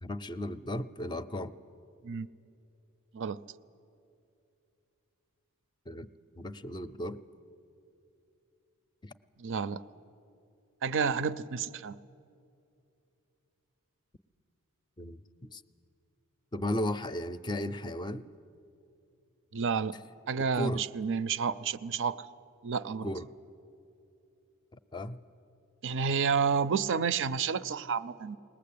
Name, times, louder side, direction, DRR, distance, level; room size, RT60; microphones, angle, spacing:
voice 1, 0.0-1.5 5.9-6.1 6.4-7.2 9.0-9.1 15.0-15.6 16.5-18.3 20.5-20.8 23.0-23.3 24.9-25.2, left 1 dB, 20° left, 0.5 m, -35 dB
voice 2, 9.4-9.8 10.8-12.0 19.5-20.0 20.3-22.3 22.6-23.1 25.8-28.4, right 6 dB, 60° right, 0.5 m, -30 dB
21.0 x 19.5 x 8.5 m
head